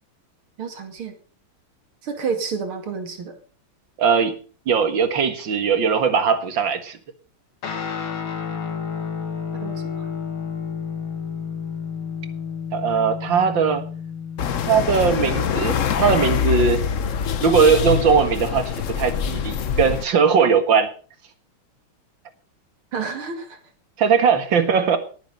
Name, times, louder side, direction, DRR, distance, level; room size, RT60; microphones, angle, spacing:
voice 1, 0.6-1.1 2.0-3.3 9.6-10.1 22.9-23.6, right 5 dB, 85° right, 6 dB, 3.3 m, -30 dB
voice 2, 4.0-4.4 4.7-7.0 12.7-13.8 14.6-16.8 17.4-20.9 24.0-25.0, right 6 dB, 65° right, 9 dB, 2.4 m, -19 dB
Guitar, 7.6-16.4, left 6 dB, 75° left, 3.0 m, -31 dB
sound 1, 14.4-20.0, left 8 dB, 55° left, 0.9 m, -24 dB
19.0 x 9.1 x 5.3 m, 0.40 s
omnidirectional pair, 2.3 m